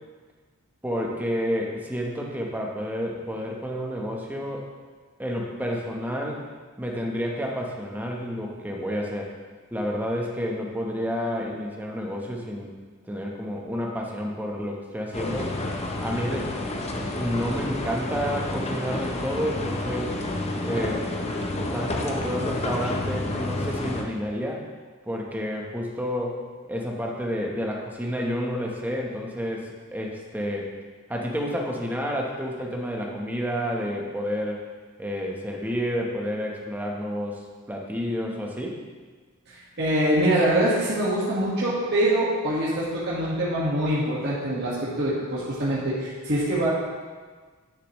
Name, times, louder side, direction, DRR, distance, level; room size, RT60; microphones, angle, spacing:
voice 1, 0.8-4.7 5.2-6.4 6.8-9.3 9.7-12.7 13.0-15.6 16.0-16.5 17.1-20.2 20.6-21.1 21.5-24.7 25.0-26.4 26.7-30.7 31.1-34.6 35.0-38.8, equal, 10° right, -1 dB, 0.9 m, -30 dB
sound 1, 15.1-24.0, left 2 dB, 30° left, 0.7 m, -30 dB
voice 2, 39.5-46.7, right 1 dB, 50° right, -8 dB, 1.6 m, -24 dB
9.7 x 6.8 x 3.1 m, 1.4 s
head